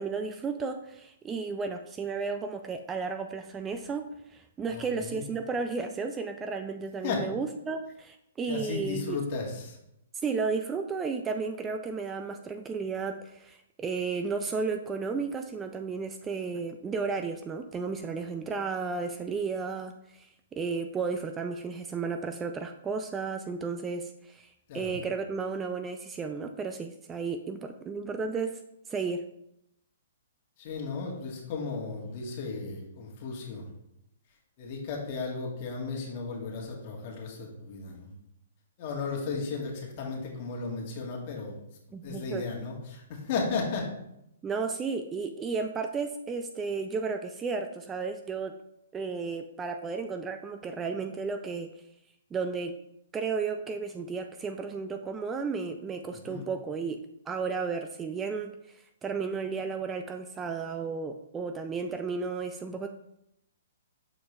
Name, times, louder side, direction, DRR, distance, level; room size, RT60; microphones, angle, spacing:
voice 1, 0.0-9.2 10.2-28.6 28.9-29.2 41.9-42.4 44.4-48.5 48.9-51.7 52.3-52.7 53.1-57.0 57.3-62.9, right 4 dB, 15° right, 7 dB, 0.3 m, -33 dB
voice 2, 4.7-5.2 7.0-7.3 8.5-9.8 24.7-24.9 30.6-33.7 34.6-38.1 38.8-43.9 56.1-56.5, left 4 dB, 45° left, -1 dB, 1.8 m, -35 dB
6.6 x 4.3 x 3.3 m, 0.81 s
hypercardioid pair, 140°, 0 cm